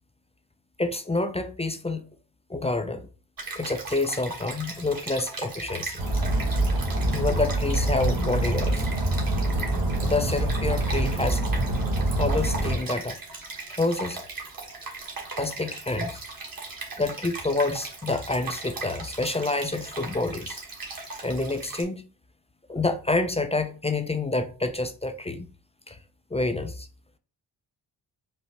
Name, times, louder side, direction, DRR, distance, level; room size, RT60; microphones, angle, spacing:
voice 1, 0.8-2.0 2.5-3.1 3.6-6.0 7.1-8.8 10.0-11.4 12.0-13.2 13.8-14.2 15.4-16.2 17.0-20.6 21.2-22.0 22.7-25.5 25.9-26.0 26.3-26.9, left 2 dB, 15° left, 0.4 m, -28 dB
Stream, 3.4-21.8, right 3 dB, 45° right, 1.5 m, -38 dB
sound 1, 6.0-12.8, right 1 dB, 70° right, 1.5 m, -25 dB
5.0 x 2.1 x 2.8 m
supercardioid pair, 45°, 48 cm